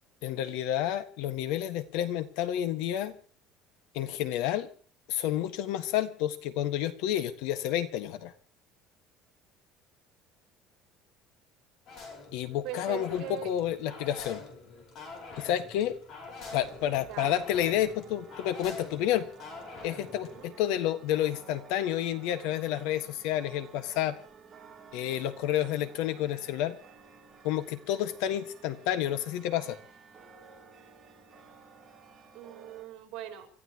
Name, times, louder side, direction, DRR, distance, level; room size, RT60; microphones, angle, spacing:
voice 1, 0.2-3.1 3.9-4.7 5.1-8.3 12.3-14.4 15.4-16.0 16.5-19.3 19.8-24.2 24.9-26.8 27.4-29.8, left 11 dB, 75° left, 12 dB, 1.6 m, -30 dB
sound 1, 11.9-20.5, left 3 dB, 40° left, 4.9 m, -45 dB
voice 2, 12.6-13.5 17.1-17.4 20.2-20.5 32.3-33.5, right 12 dB, 55° right, 4 dB, 5.0 m, -41 dB
sound 2, 16.5-32.9, right 5 dB, 20° right, 3.7 m, -53 dB
29.0 x 14.0 x 3.0 m, 0.43 s
cardioid pair, 170°, 0 cm